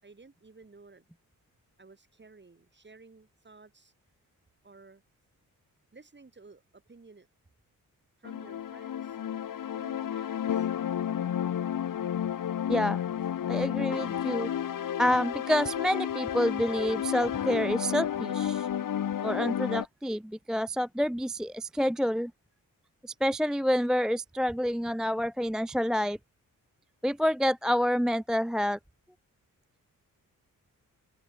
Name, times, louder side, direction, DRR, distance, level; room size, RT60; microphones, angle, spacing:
voice 1, 0.0-1.1 1.8-3.9 4.6-5.0 5.9-7.3 8.2-9.2 9.7-10.7, right 3 dB, 30° right, 5.5 m, -54 dB
sound 1, 8.2-19.8, left 9 dB, 65° left, 1.3 m, -31 dB
voice 2, 12.7-13.0 13.5-14.5 15.0-18.7 19.2-22.3 23.0-26.2 27.0-28.8, equal, ahead, 0.3 m, -28 dB
open air
cardioid pair, 70°, 34 cm